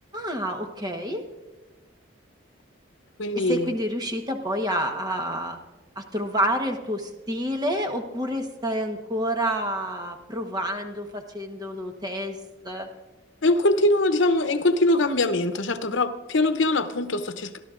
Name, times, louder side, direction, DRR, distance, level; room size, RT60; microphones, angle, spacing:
voice 1, 0.1-1.2 3.3-5.6 6.0-12.4 12.6-12.9, equal, 20° right, 4 dB, 1.1 m, -28 dB
voice 2, 3.2-3.7 13.4-17.5, left 2 dB, 75° left, 10 dB, 0.8 m, -22 dB
26.0 x 12.0 x 2.5 m, 1.1 s
head